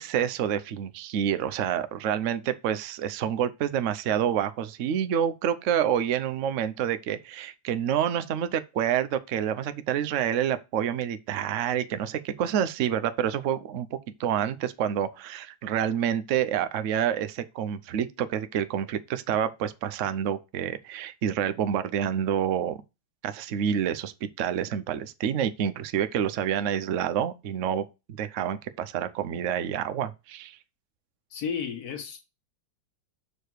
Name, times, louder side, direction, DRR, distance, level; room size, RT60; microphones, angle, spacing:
voice 1, 0.0-22.8 23.2-24.1 24.4-27.9 28.2-30.6, right 9 dB, 85° right, 0.6 m, -28 dB
voice 2, 31.3-32.2, left 7 dB, 55° left, 1.6 m, -33 dB
6.6 x 4.9 x 4.6 m
omnidirectional pair, 2.2 m